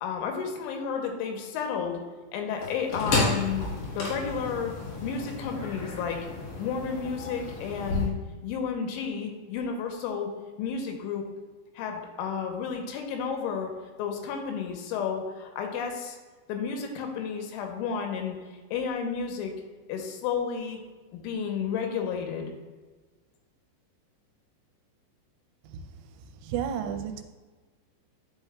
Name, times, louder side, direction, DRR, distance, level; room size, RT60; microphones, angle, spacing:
voice 1, 0.0-2.0 2.3-4.7 5.0-6.2 6.6-8.1 8.4-10.3 10.6-11.3 11.8-13.7 14.0-16.2 16.5-18.4 18.7-19.5 19.9-20.8 21.1-22.5, left 6 dB, 85° left, 3 dB, 3.2 m, -32 dB
sound 1, 2.6-8.1, left 3 dB, 60° left, 2.4 m, -32 dB
voice 2, 26.4-27.2, right 8 dB, 90° right, 6 dB, 3.0 m, -31 dB
9.5 x 5.6 x 2.3 m, 1.3 s
omnidirectional pair, 5.3 m